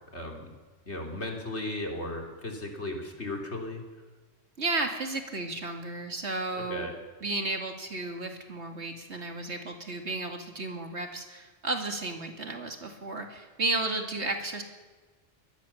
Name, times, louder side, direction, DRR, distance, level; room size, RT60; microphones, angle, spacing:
voice 1, 0.1-0.5 0.9-3.8 6.5-6.9, left 1 dB, 60° left, 2 dB, 3.7 m, -36 dB
voice 2, 4.6-6.9 7.2-14.6, right 2 dB, 60° right, 4 dB, 2.7 m, -33 dB
23.5 x 19.0 x 7.2 m, 1.3 s
omnidirectional pair, 1.3 m